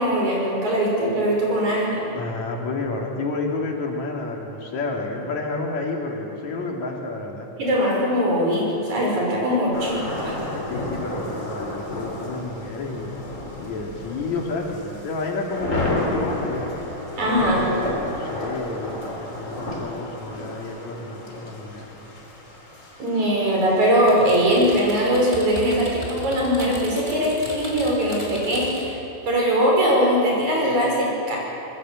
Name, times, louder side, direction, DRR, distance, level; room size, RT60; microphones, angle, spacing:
voice 1, 0.0-2.2 7.6-10.4 17.2-17.7 23.0-29.0 29.3-31.4, equal, 70° right, -2 dB, 7.0 m, -21 dB
voice 2, 2.1-7.5 10.7-13.1 13.6-16.7 17.2-22.0, left 3 dB, 65° left, 0 dB, 3.9 m, -30 dB
sound 1, 9.7-25.0, left 1 dB, 25° left, 3.6 m, -32 dB
Typing, 24.1-29.0, equal, 10° right, 4.1 m, -37 dB
25.0 x 20.5 x 7.8 m, 3.0 s
omnidirectional pair, 3.5 m